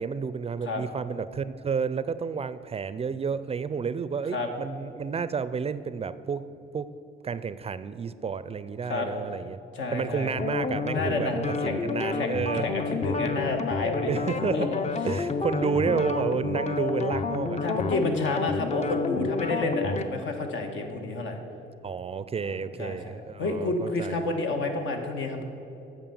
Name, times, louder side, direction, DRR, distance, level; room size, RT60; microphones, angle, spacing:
voice 1, 0.0-6.5 6.7-6.9 7.2-9.6 9.9-11.3 11.6-12.7 14.1-14.7 15.0-17.6 21.8-24.3, right 6 dB, 30° right, 15 dB, 0.4 m, -30 dB
voice 2, 9.7-10.3 10.9-11.8 12.1-14.1 14.5-14.8 17.6-21.4 22.4-25.4, left 2 dB, 75° left, 3 dB, 1.4 m, -30 dB
sound 1, 10.4-20.1, left 4 dB, 35° left, 0.6 m, -30 dB
8.9 x 6.8 x 7.0 m, 2.9 s
cardioid pair, 90°, 20 cm